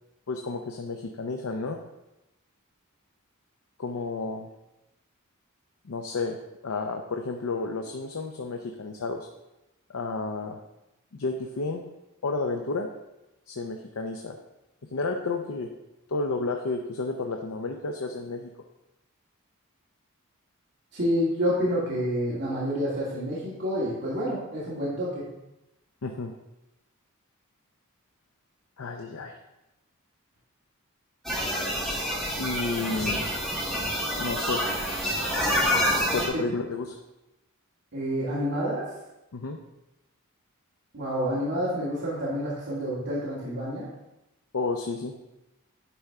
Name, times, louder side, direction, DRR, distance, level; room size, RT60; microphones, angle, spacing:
voice 1, 0.3-1.8 3.8-4.5 5.8-9.3 9.9-10.6 11.1-11.8 12.2-12.9 13.5-14.4 14.9-15.7 16.1-18.5 26.0-26.3 28.8-29.4 32.3-33.3 34.2-34.6 36.1-37.0 39.3-39.6 44.5-45.2, left 3 dB, 70° left, 3 dB, 0.6 m, -31 dB
voice 2, 20.9-25.2 36.3-36.4 37.9-38.8 40.9-43.9, equal, 55° right, -10 dB, 2.2 m, -28 dB
sound 1, 31.2-36.3, equal, ahead, 1.5 m, -27 dB
10.0 x 4.4 x 3.5 m, 0.94 s
head